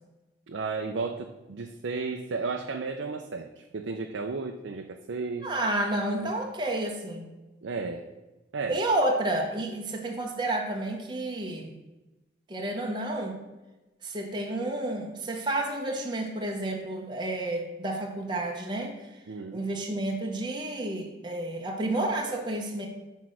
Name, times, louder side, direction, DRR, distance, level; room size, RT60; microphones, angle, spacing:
voice 1, 0.5-3.5 3.7-5.5 6.2-6.3 7.6-8.0 8.5-8.8 19.3-19.6, right 4 dB, 75° right, 4 dB, 0.5 m, -33 dB
voice 2, 5.4-7.3 8.7-11.7 12.5-13.4 14.0-18.9 19.5-22.9, right 1 dB, 25° right, 1 dB, 0.7 m, -30 dB
6.0 x 4.6 x 6.2 m, 1.1 s
head